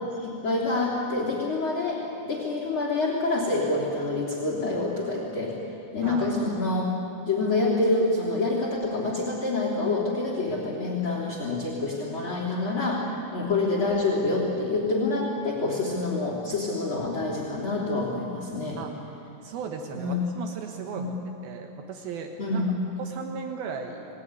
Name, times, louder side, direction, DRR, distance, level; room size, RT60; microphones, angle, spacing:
voice 1, 0.2-5.5 5.9-6.9 7.2-13.0 13.3-18.8 19.9-20.2 21.0-21.1 22.4-22.6, left 2 dB, 35° left, -3 dB, 3.9 m, -27 dB
voice 2, 19.4-22.7 23.0-24.1, right 6 dB, 75° right, 4 dB, 3.1 m, -36 dB
29.0 x 19.5 x 9.7 m, 2.8 s
omnidirectional pair, 4.3 m